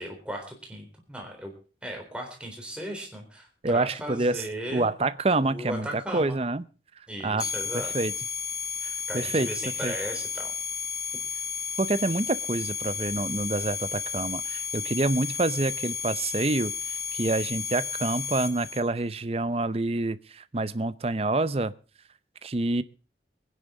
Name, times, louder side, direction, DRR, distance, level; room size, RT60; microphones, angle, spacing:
voice 1, 0.0-1.5 1.8-4.9 5.5-6.4 7.1-7.9 9.1-10.5, equal, 5° right, 1 dB, 3.8 m, -37 dB
voice 2, 3.6-4.4 4.7-6.6 7.2-7.5 7.7-8.1 8.8-9.5 9.8-9.9 11.8-21.7 22.4-22.8, right 2 dB, 35° right, 15 dB, 0.6 m, -27 dB
sound 1, 7.4-18.8, left 6 dB, 65° left, 2.4 m, -33 dB
22.5 x 10.0 x 3.8 m, 0.37 s
head